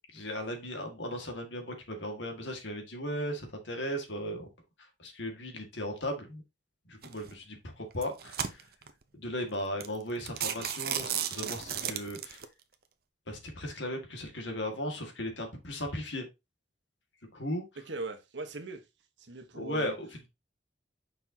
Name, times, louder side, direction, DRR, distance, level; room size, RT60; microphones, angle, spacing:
voice 1, 0.1-4.5 5.0-6.4 6.9-8.6 9.1-12.4 13.3-16.3 17.3-17.6 19.5-20.3, equal, 75° left, 2.0 m, -36 dB
sound 1, 7.0-7.3 7.9-8.9 9.4-9.5 9.8-10.0 10.3-12.4, right 9 dB, 55° right, 0.7 m, -34 dB
voice 2, 17.9-18.9 19.2-20.0, right 3 dB, 75° right, 1.3 m, -39 dB
6.8 x 5.5 x 2.9 m
head